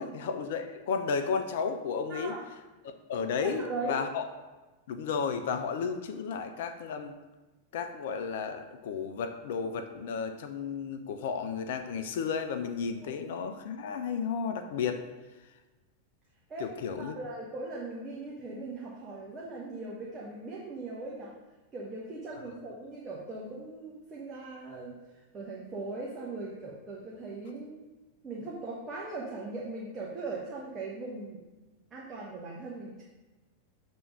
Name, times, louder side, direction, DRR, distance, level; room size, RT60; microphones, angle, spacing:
voice 1, 0.0-2.4 3.1-4.2 4.9-7.1 7.7-15.0 16.6-17.2, left 6 dB, 55° left, 8 dB, 0.4 m, -33 dB
voice 2, 2.1-2.5 3.4-4.0 13.0-13.1 16.5-21.3 21.7-24.9 25.3-27.8 28.2-31.4 31.9-33.0, right 2 dB, 20° right, -4 dB, 1.0 m, -39 dB
6.9 x 3.5 x 5.5 m, 1.2 s
figure-of-eight pair, 90°, 0 cm